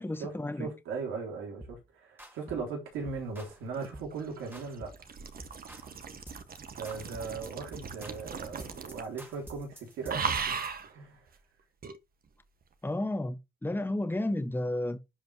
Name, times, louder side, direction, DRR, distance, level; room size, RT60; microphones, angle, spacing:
voice 1, 0.0-0.7 12.8-15.0, left 1 dB, 10° left, 1.3 m, -32 dB
voice 2, 0.6-4.9 6.8-11.3, right 4 dB, 90° right, 3.4 m, -38 dB
sound 1, 1.6-1.8 2.2-2.7 3.1-3.6 3.9-4.2 4.5-5.1 5.4-5.9 6.3-6.6 6.8-10.8, right 1 dB, 10° right, 2.3 m, -49 dB
sound 2, 3.5-9.2 9.5-9.7 10.1-10.9 11.8-12.0, right 6 dB, 50° right, 1.4 m, -37 dB
11.0 x 5.2 x 2.9 m
cardioid pair, 90°, 20 cm